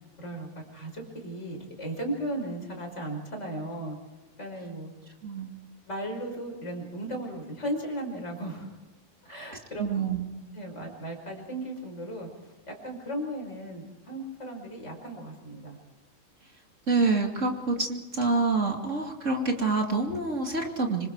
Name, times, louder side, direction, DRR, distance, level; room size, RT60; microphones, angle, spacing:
voice 1, 0.2-4.0 4.4-4.9 5.9-8.8 9.2-10.0 10.5-15.8, right 1 dB, 20° left, 1 dB, 5.7 m, -36 dB
voice 2, 5.2-5.5 9.8-10.2 16.9-21.1, right 3 dB, 25° right, 2 dB, 2.3 m, -27 dB
27.0 x 25.5 x 4.7 m, 1.1 s
omnidirectional pair, 3.9 m